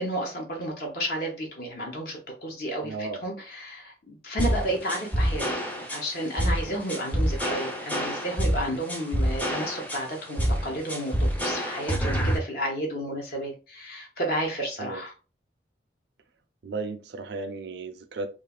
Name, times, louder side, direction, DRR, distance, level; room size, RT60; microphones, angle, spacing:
voice 1, 0.0-5.5 5.9-15.1, right 1 dB, 55° left, 0.7 m, -32 dB
voice 2, 2.8-3.2 14.8-15.0 16.6-18.3, right 3 dB, 70° right, 0.4 m, -34 dB
sound 1, 4.4-12.4, equal, 10° left, 0.4 m, -27 dB
3.1 x 2.3 x 2.2 m
head